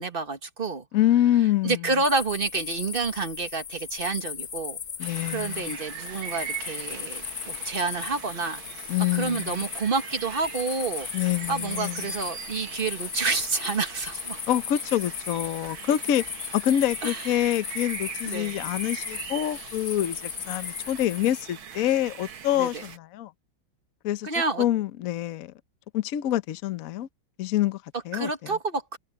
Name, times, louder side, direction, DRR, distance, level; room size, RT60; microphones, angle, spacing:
voice 1, 0.0-0.8 1.6-4.8 5.3-8.6 9.1-11.1 11.5-14.4 17.0-17.6 18.2-18.6 22.5-22.8 24.2-24.6 28.1-29.0, right 4 dB, 30° right, 1.5 m, -29 dB
voice 2, 0.9-1.8 5.0-5.7 8.9-9.6 11.1-12.0 14.5-16.2 16.5-23.3 24.0-24.3 24.6-25.5 25.9-27.1 27.4-27.8 28.1-28.3, left 12 dB, 60° left, 1.0 m, -26 dB
sound 1, 2.0-21.4, left 7 dB, 90° left, 0.5 m, -37 dB
sound 2, 5.0-23.0, right 8 dB, 85° right, 2.4 m, -41 dB
omnidirectional pair, 2.2 m